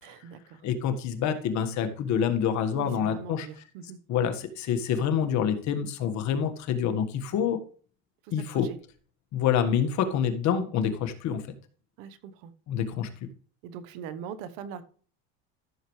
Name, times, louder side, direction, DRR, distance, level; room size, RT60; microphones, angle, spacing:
voice 1, 0.0-0.6 2.7-4.0 8.2-8.3 8.6-8.8 12.0-12.5 13.6-14.8, right 7 dB, 75° right, 12 dB, 1.1 m, -41 dB
voice 2, 0.6-3.5 4.1-7.6 8.3-8.7 9.3-11.4 12.7-13.1, left 8 dB, 55° left, 8 dB, 1.6 m, -27 dB
14.0 x 6.8 x 3.2 m, 0.43 s
supercardioid pair, 110°, 33 cm